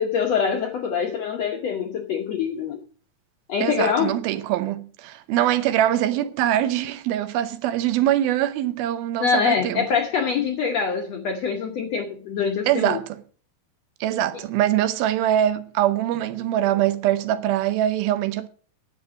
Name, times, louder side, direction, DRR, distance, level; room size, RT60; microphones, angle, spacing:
voice 1, 0.0-2.8 3.5-4.2 9.2-13.0, left 6 dB, 75° left, 1.5 m, -24 dB
voice 2, 3.6-9.9 12.7-13.0 14.0-18.5, right 12 dB, 80° right, 2.6 m, -23 dB
10.0 x 7.9 x 7.0 m
omnidirectional pair, 4.3 m